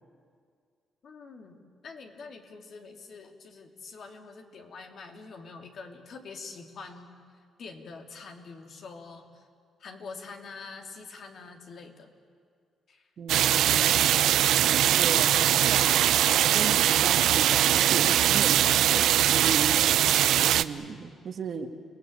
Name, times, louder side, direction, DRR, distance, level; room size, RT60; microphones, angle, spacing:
voice 1, 1.0-7.2 7.6-9.4 9.8-12.1 12.9-13.1, left 4 dB, 55° left, 4 dB, 2.8 m, -45 dB
voice 2, 13.2-14.1 15.0-19.8 20.5-21.7, right 5 dB, 50° right, 6 dB, 1.8 m, -36 dB
sound 1, 13.3-20.6, right 11 dB, 85° right, 0.6 m, -22 dB
30.0 x 19.0 x 8.7 m, 2.1 s
cardioid pair, 115°, 0 cm